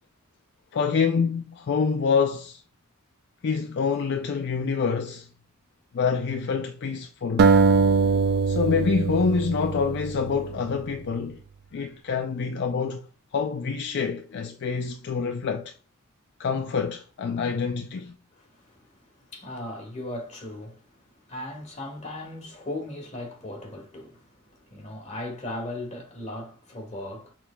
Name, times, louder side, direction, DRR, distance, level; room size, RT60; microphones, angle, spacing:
voice 1, 0.7-2.6 3.4-5.3 5.9-7.5 8.5-11.4 11.7-13.1 13.3-15.7 16.4-18.2, left 5 dB, 55° left, 0.4 m, -26 dB
sound 1, 7.4-10.6, right 5 dB, 45° right, 0.3 m, -22 dB
voice 2, 18.4-18.9 19.3-20.9 21.3-27.3, left 1 dB, 30° left, 1.5 m, -37 dB
6.2 x 3.5 x 2.2 m
head